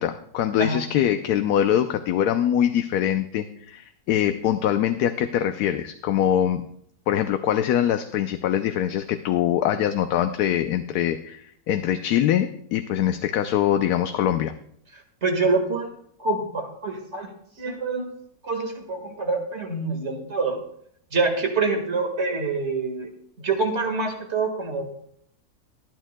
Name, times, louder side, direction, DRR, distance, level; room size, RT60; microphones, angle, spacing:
voice 1, 0.0-6.6 7.1-14.5, left 10 dB, 85° left, 8 dB, 1.1 m, -23 dB
voice 2, 15.2-15.9 16.2-17.3 17.6-18.0 18.4-20.6 21.1-23.1 23.4-24.8, right 3 dB, 45° right, 4 dB, 2.0 m, -26 dB
23.0 x 9.2 x 2.2 m, 0.67 s
omnidirectional pair, 1.6 m